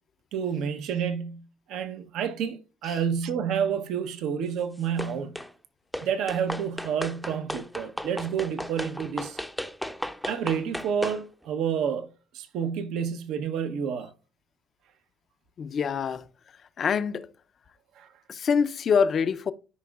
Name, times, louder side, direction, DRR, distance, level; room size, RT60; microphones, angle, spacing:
voice 1, 0.3-5.4 6.0-9.4 10.2-12.1 12.3-14.1 18.0-18.1, right 7 dB, 70° right, 0.8 m, -29 dB
sound 1, 5.0-5.5 5.9-11.2, equal, ahead, 0.6 m, -35 dB
voice 2, 15.6-16.3 16.8-17.3 18.3-19.5, left 6 dB, 50° left, 0.5 m, -25 dB
12.5 x 5.2 x 2.3 m
supercardioid pair, 85°, 0 cm